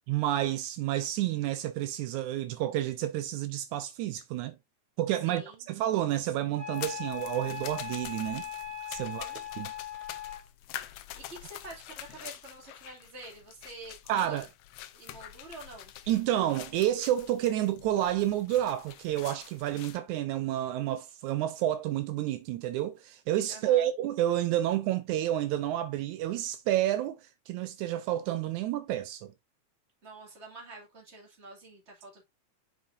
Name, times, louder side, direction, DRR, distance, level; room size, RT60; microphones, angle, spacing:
voice 1, 0.1-4.6 5.0-8.5 8.9-9.3 9.6-9.7 14.1-14.5 16.1-27.2 27.5-29.3, right 13 dB, 80° right, 2.0 m, -30 dB
voice 2, 5.2-5.7 6.2-6.3 9.0-9.4 11.1-14.5 14.9-15.9 23.5-23.9 30.0-32.2, right 2 dB, 25° right, 2.6 m, -47 dB
Wind instrument woodwind instrument, 6.6-10.4, left 9 dB, 65° right, 3.5 m, -39 dB
sound 1, 6.7-20.0, left 13 dB, 75° left, 1.6 m, -46 dB
7.2 x 5.7 x 2.6 m
omnidirectional pair, 3.4 m